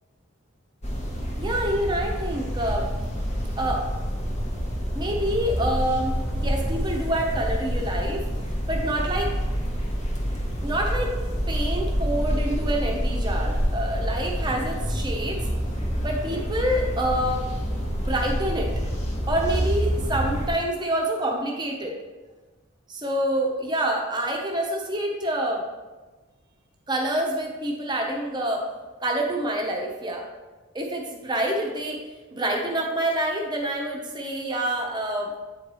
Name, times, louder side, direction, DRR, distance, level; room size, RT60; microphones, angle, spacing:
sound 1, 0.8-20.5, equal, 35° left, 1.0 m, -27 dB
voice 1, 1.4-2.8 3.6-3.8 4.9-8.2 8.7-9.3 10.6-11.1 11.5-15.5 16.0-17.4 18.0-18.7 19.3-21.9 22.9-25.6 26.9-28.6 29.0-30.2 30.7-32.0 32.3-35.3, right 1 dB, 20° right, 0 dB, 0.9 m, -27 dB
8.3 x 4.5 x 3.1 m, 1.2 s
head